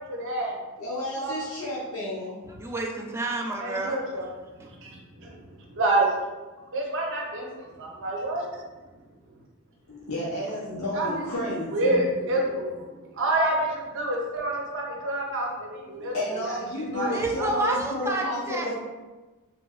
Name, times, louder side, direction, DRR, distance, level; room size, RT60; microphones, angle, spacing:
voice 1, 0.2-0.5 1.2-1.4 3.6-4.3 4.8-4.9 5.2-5.3 5.8-6.1 6.7-7.5 7.8-8.5 10.9-11.2 11.7-12.8 13.2-16.1 16.5-16.6 16.9-17.2 17.5-17.7, right 1 dB, 60° right, -1 dB, 0.7 m, -27 dB
voice 2, 0.8-2.6 9.9-11.7 16.0-18.8, left 1 dB, 75° left, -7 dB, 0.8 m, -31 dB
voice 3, 2.6-4.0 4.6-4.7 17.1-18.7, right 1 dB, 10° right, 1 dB, 0.3 m, -29 dB
3.2 x 2.3 x 3.1 m, 1.2 s
head